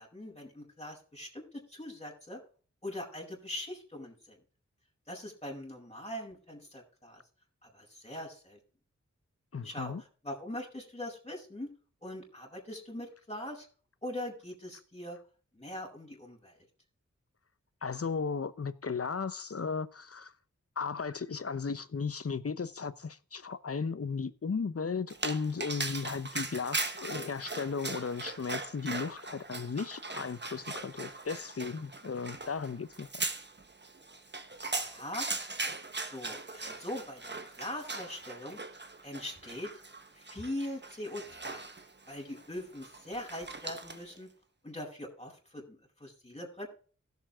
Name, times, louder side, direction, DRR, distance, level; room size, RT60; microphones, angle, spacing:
voice 1, 0.0-2.4 2.8-4.4 5.1-7.2 7.6-8.6 9.6-11.7 12.0-13.7 14.0-15.2 15.5-16.5 34.7-35.3 36.0-38.6 39.0-39.7 40.1-41.6 42.1-44.3 44.6-46.7, left 1 dB, 20° left, 4.6 m, -42 dB
voice 2, 9.5-10.0 17.8-20.3 20.8-33.1, left 5 dB, 55° left, 0.9 m, -35 dB
Dog, 25.1-44.2, right 3 dB, 40° right, 1.3 m, -40 dB
16.0 x 7.3 x 3.7 m
wide cardioid pair, 60°, 29 cm